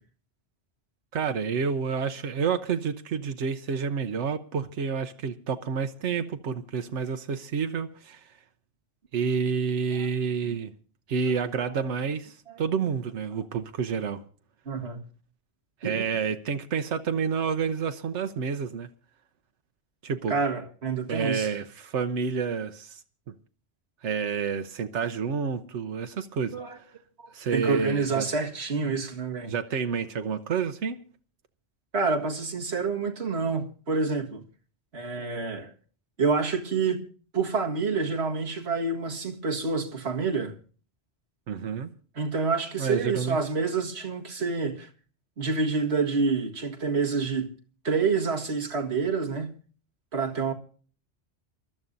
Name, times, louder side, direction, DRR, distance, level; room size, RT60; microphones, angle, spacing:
voice 1, 1.1-8.3 9.1-10.7 11.1-14.2 15.8-18.9 20.0-20.3 21.1-23.0 24.0-26.6 27.3-28.3 28.8-29.0 29.4-31.0 41.5-41.9 42.8-43.4, right 6 dB, 90° right, 1.1 m, -29 dB
voice 2, 14.7-15.0 15.8-16.1 20.3-21.5 26.5-26.8 27.2-29.5 31.9-34.4 34.9-35.7 36.2-37.0 37.3-40.5 42.2-44.9 45.4-47.5 47.8-49.5 50.1-50.5, right 4 dB, 65° right, 2.0 m, -28 dB
28.0 x 12.5 x 2.6 m
omnidirectional pair, 1.2 m